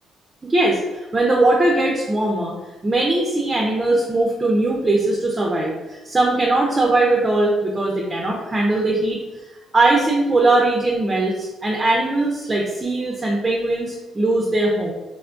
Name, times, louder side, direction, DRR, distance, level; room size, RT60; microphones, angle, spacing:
voice 1, 0.4-2.5 2.8-9.2 9.7-14.9, right 2 dB, 25° right, -1 dB, 0.5 m, -20 dB
3.5 x 2.2 x 2.5 m, 1.1 s
cardioid pair, 90°, 0 cm